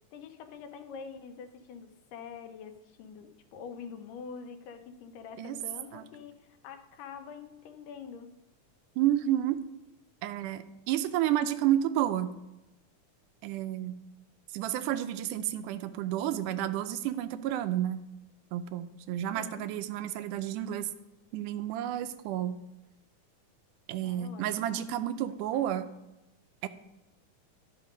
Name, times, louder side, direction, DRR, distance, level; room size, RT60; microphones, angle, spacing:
voice 1, 0.1-8.3 19.3-19.7 24.0-25.8, left 6 dB, 90° left, 7 dB, 2.4 m, -46 dB
voice 2, 9.0-9.7 10.2-12.3 13.4-13.9 14.5-18.0 18.5-20.9 21.3-22.5 23.9-25.9 26.6-26.7, right 12 dB, 80° right, 12 dB, 2.0 m, -30 dB
11.5 x 5.6 x 5.1 m, 0.97 s
omnidirectional pair, 3.7 m